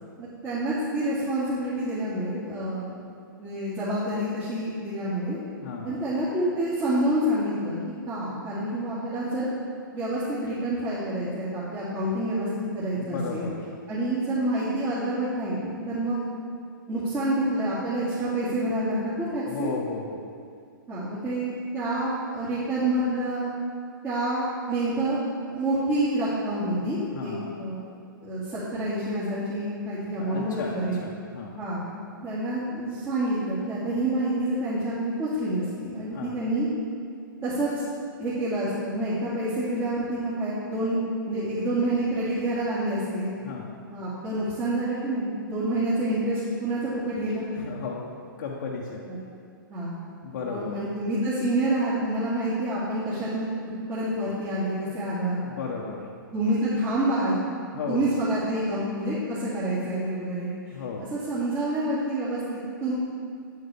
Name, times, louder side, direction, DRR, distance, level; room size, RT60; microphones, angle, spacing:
voice 1, 0.2-2.9 3.4-5.4 5.8-7.8 8.1-9.5 9.9-12.5 12.7-13.5 13.9-16.2 16.9-19.7 20.9-23.5 24.0-25.2 25.5-27.9 28.2-30.9 31.6-31.8 32.2-36.7 37.4-37.8 38.2-41.0 41.3-43.3 43.9-47.5 49.1-49.2 49.7-50.0 50.4-53.5 53.9-55.4 56.3-57.4 57.9-62.9, right 1 dB, 20° right, -13 dB, 2.3 m, -28 dB
voice 2, 5.6-6.0 12.9-13.6 19.5-20.2 27.1-27.6 30.2-31.5 36.1-36.3 43.4-43.7 47.5-48.1 48.4-49.0 50.2-50.8 55.4-56.1 57.7-58.1 60.7-61.1, left 5 dB, 60° left, -4 dB, 1.1 m, -34 dB
9.0 x 8.3 x 3.5 m, 2.4 s
hypercardioid pair, 130°, 12 cm